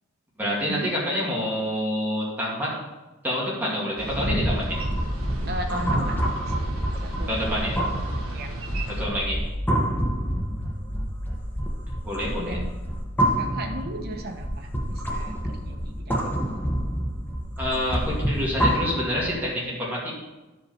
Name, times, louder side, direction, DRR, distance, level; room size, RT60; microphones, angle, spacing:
voice 1, 0.4-2.7 3.2-4.8 7.3-7.8 8.9-9.5 12.0-12.6 17.6-20.2, equal, 10° right, -6 dB, 2.2 m, -27 dB
Boat Water vehicle, 4.0-9.1, right 1 dB, 80° right, 1.7 m, -30 dB
sound 1, 4.7-19.4, equal, 10° left, 1.0 m, -28 dB
voice 2, 5.5-6.3 7.0-7.7 8.3-8.5 12.4-12.7 13.4-16.3, right 1 dB, 50° right, 3 dB, 1.1 m, -36 dB
12.5 x 5.0 x 4.5 m, 1.1 s
head